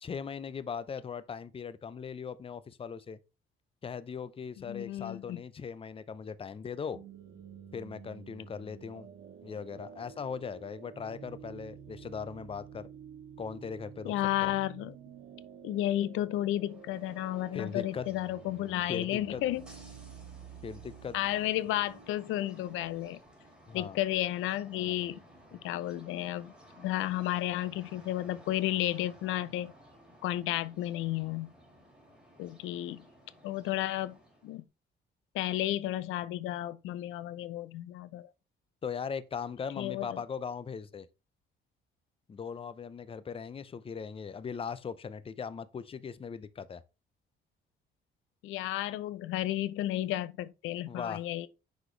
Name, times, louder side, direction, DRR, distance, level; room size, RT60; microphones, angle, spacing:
voice 1, 0.0-3.2 3.8-7.0 7.7-9.1 9.4-12.9 13.4-14.1 14.4-14.5 17.5-18.1 18.9-19.4 20.6-21.1 23.7-24.0 38.8-41.1 42.3-46.8 50.9-51.2, left 6 dB, 30° left, 0.5 m, -39 dB
voice 2, 4.7-5.4 14.1-15.0 15.6-19.6 21.1-23.2 23.7-25.2 25.6-26.5 26.8-29.7 30.2-31.5 32.4-33.0 33.4-34.2 34.4-34.6 35.3-38.3 39.8-40.1 48.4-51.5, left 14 dB, 90° left, 0.4 m, -32 dB
sound 1, 6.9-22.9, right 8 dB, 70° right, 1.1 m, -50 dB
sound 2, 16.5-34.6, left 1 dB, 5° right, 3.5 m, -56 dB
6.0 x 5.1 x 3.1 m
cardioid pair, 90°, 20 cm